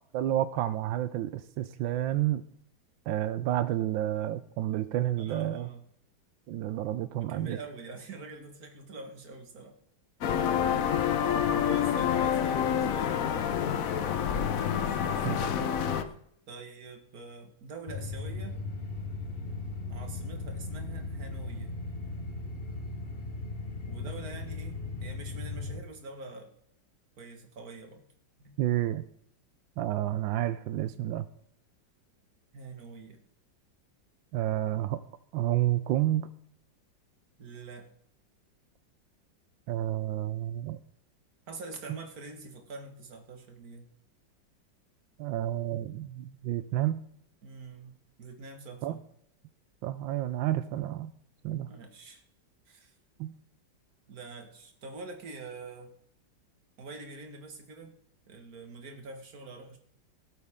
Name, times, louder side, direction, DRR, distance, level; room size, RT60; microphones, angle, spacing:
voice 1, 0.1-2.4 3.1-5.7 6.5-7.6 15.2-15.4 28.6-29.0 29.8-31.3 34.3-35.0 35.3-36.3 39.7-40.8 45.2-47.0 48.8-49.0 49.8-51.1 51.4-51.7 53.2-53.3, right 13 dB, 90° right, 13 dB, 1.4 m, -30 dB
voice 2, 5.2-5.8 7.2-9.8 10.7-10.8 11.6-13.3 14.7-16.2 16.5-18.6 19.9-21.7 23.9-26.5 27.2-28.1 28.4-28.6 32.5-33.2 37.4-37.9 41.5-43.9 47.4-47.9 48.2-49.0 51.7-52.2 52.7-53.0 54.1-56.0 56.8-57.9 58.3-59.8, right 3 dB, 55° right, 5 dB, 2.1 m, -45 dB
sound 1, 10.2-16.0, left 8 dB, 55° left, 1.1 m, -27 dB
sound 2, 17.9-25.8, left 3 dB, 35° left, 1.2 m, -37 dB
18.0 x 8.2 x 3.6 m, 0.68 s
omnidirectional pair, 2.0 m